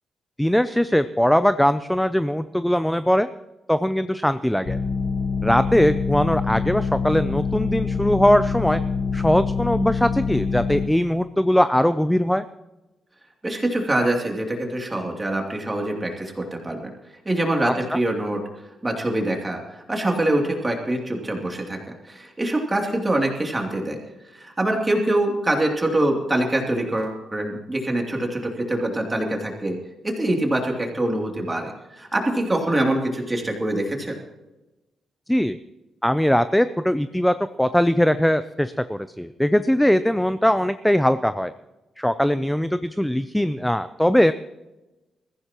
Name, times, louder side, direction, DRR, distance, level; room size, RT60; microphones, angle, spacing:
voice 1, 0.4-3.3 3.7-4.8 5.4-8.8 9.1-12.4 17.9-18.0 35.3-35.6 36.0-41.5 42.0-44.3, equal, 5° left, 12 dB, 0.4 m, -20 dB
sound 1, 4.6-10.8, left 5 dB, 65° left, 4.3 m, -25 dB
voice 2, 13.4-16.9 17.2-18.4 18.8-24.0 24.3-29.8 30.0-34.2, right 1 dB, 15° right, 1 dB, 2.7 m, -24 dB
21.5 x 15.0 x 3.0 m, 1.1 s
cardioid pair, 145°, 0 cm